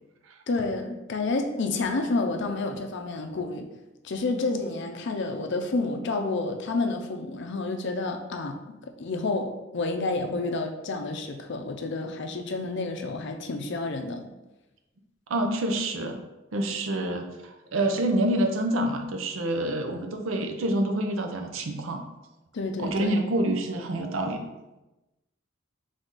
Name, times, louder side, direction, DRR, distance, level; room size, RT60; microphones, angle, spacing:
voice 1, 0.5-3.7 4.0-8.7 9.0-14.3 22.5-23.1, left 3 dB, 65° left, 5 dB, 0.5 m, -29 dB
voice 2, 15.3-16.2 16.5-22.0 22.8-24.5, right 1 dB, 85° right, 5 dB, 0.6 m, -27 dB
3.7 x 3.4 x 4.0 m, 1.0 s
head